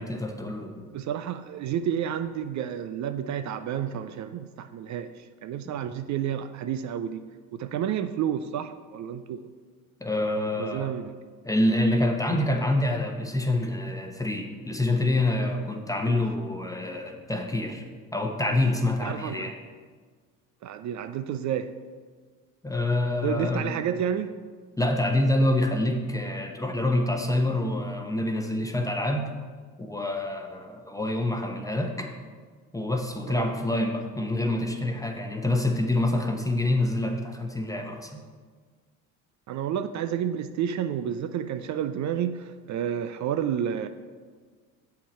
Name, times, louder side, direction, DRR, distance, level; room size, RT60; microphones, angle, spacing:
voice 1, 0.0-0.9 10.0-10.9 11.4-17.8 18.1-19.5 22.6-23.7 24.8-29.3 29.8-32.1 32.7-38.2, left 1 dB, 10° left, 3 dB, 0.9 m, -26 dB
voice 2, 0.9-7.2 7.5-9.5 10.6-11.1 16.1-16.2 19.0-19.5 20.6-21.7 23.2-24.4 33.3-33.6 39.5-43.9, right 9 dB, 45° right, 10 dB, 0.4 m, -30 dB
7.0 x 5.8 x 4.3 m, 1.5 s
hypercardioid pair, 65°, 42 cm